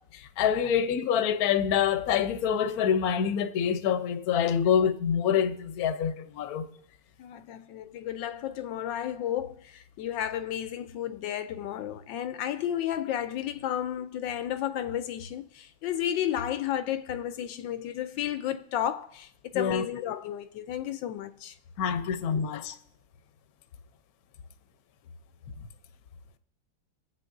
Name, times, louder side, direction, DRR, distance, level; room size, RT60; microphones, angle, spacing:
voice 1, 0.4-6.7 19.5-19.9 21.8-22.7, left 8 dB, 60° left, 1.1 m, -26 dB
voice 2, 7.2-21.5 22.1-22.2, left 11 dB, 85° left, 1.3 m, -32 dB
23.5 x 8.1 x 2.6 m
omnidirectional pair, 2.0 m